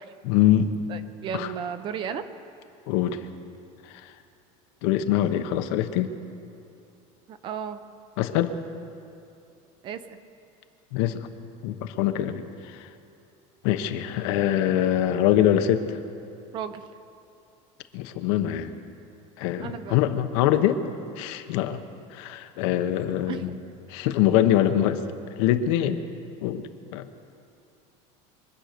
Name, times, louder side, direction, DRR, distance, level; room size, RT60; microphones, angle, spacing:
voice 1, 0.2-0.7 1.3-1.5 2.9-3.2 3.9-4.1 4.8-6.1 8.2-8.6 10.9-11.3 11.6-12.4 12.7-12.9 13.6-16.0 17.9-18.7 19.4-20.8 21.2-21.8 22.1-23.5 23.9-25.0 25.4-26.0 26.4-26.6 26.9-27.1, left 11 dB, 70° left, 8 dB, 1.0 m, -23 dB
voice 2, 0.9-2.3 7.3-7.8 9.8-10.2 16.5-16.9 19.6-20.0 23.2-23.6, right 8 dB, 30° right, 11 dB, 0.6 m, -34 dB
24.0 x 9.1 x 6.7 m, 2.6 s
cardioid pair, 170°, 16 cm